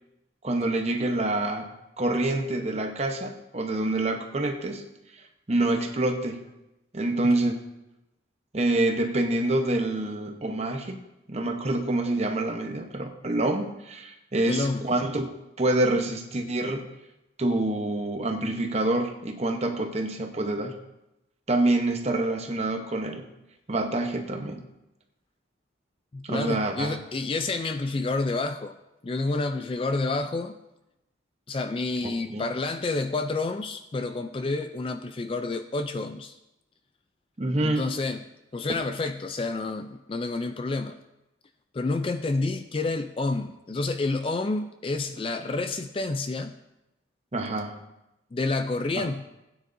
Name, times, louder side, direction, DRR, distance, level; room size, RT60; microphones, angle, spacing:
voice 1, 0.4-4.9 5.5-6.4 6.9-7.6 8.5-11.0 11.3-16.8 17.4-20.7 21.5-23.3 23.7-24.6 26.2-27.0 32.0-32.4 37.4-37.9 47.3-47.8 49.0-49.1, right 2 dB, 35° right, 4 dB, 0.9 m, -27 dB
voice 2, 14.4-14.9 26.1-28.7 29.0-30.5 31.5-36.3 37.6-38.2 38.5-41.0 41.7-46.5 48.3-49.2, left 3 dB, 25° left, 9 dB, 0.3 m, -29 dB
16.0 x 9.1 x 2.6 m, 0.93 s
head